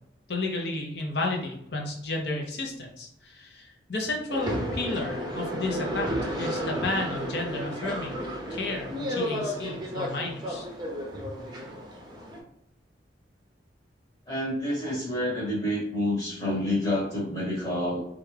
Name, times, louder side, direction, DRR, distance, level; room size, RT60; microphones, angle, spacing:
voice 1, 0.3-10.7, left 2 dB, 65° left, 1 dB, 0.7 m, -32 dB
sound 1, 4.3-12.4, equal, 20° right, 0.6 m, -33 dB
voice 2, 14.3-18.0, left 1 dB, 25° left, -6 dB, 1.1 m, -28 dB
3.3 x 2.4 x 3.2 m, 0.76 s
head